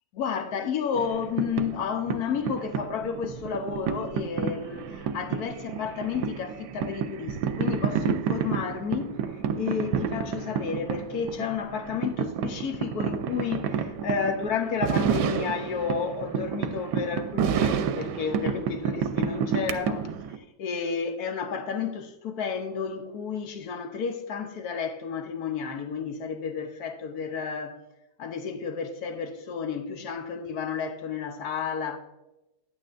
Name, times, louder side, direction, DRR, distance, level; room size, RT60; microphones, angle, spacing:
voice 1, 0.1-27.8 28.2-32.0, left 6 dB, 65° left, 1.2 m, -31 dB
sound 1, 1.0-20.4, right 7 dB, 75° right, 1.1 m, -30 dB
9.7 x 8.7 x 2.5 m
omnidirectional pair, 1.9 m